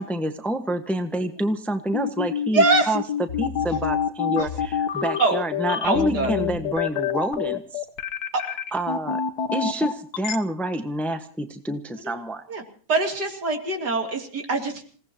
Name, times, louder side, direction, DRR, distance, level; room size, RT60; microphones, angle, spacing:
voice 1, 0.0-3.0 3.4-7.8 8.7-9.2 9.5-12.4, right 1 dB, ahead, 7 dB, 1.2 m, -27 dB
sound 1, 1.9-10.4, left 8 dB, 70° left, 1.6 m, -26 dB
voice 2, 2.5-3.0 4.4-4.5 5.2-5.4 5.8-6.3 8.3-8.5 12.0-12.2 12.5-12.6 12.9-14.8, right 3 dB, 75° right, 3 dB, 3.5 m, -23 dB
28.0 x 18.0 x 2.9 m, 0.42 s
omnidirectional pair, 1.8 m